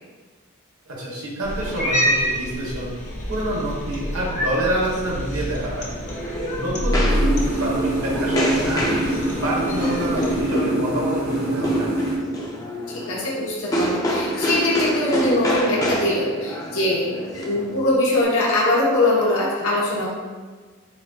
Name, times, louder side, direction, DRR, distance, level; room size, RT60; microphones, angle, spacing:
voice 1, 0.9-3.0 3.3-5.9 6.5-11.9, right 1 dB, 75° right, -4 dB, 1.2 m, -27 dB
Cat, 1.4-10.4, equal, 35° left, 0.8 m, -27 dB
sound 1, 5.8-18.2, equal, 15° left, 0.5 m, -27 dB
sound 2, 7.1-12.2, right 1 dB, 50° right, 0.9 m, -25 dB
voice 2, 12.9-17.1 17.4-20.1, left 1 dB, 75° left, -6 dB, 1.0 m, -22 dB
7.5 x 2.6 x 2.3 m, 1.4 s
head